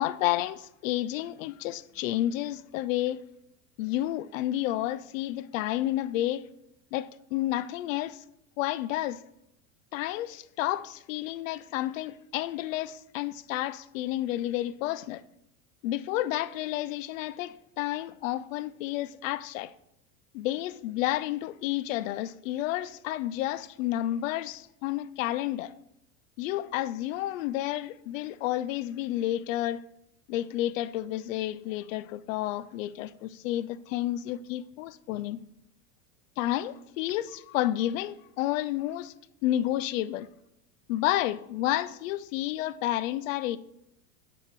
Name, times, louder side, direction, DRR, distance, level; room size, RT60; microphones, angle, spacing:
voice 1, 0.0-3.2 3.8-6.5 6.9-8.2 8.6-9.2 9.9-15.2 15.8-19.7 20.3-25.7 26.4-29.8 30.3-35.4 36.4-39.1 39.4-40.3 40.9-43.6, left 14 dB, 75° left, 0.6 m, -30 dB
6.0 x 4.9 x 6.0 m
supercardioid pair, 140°, 40 cm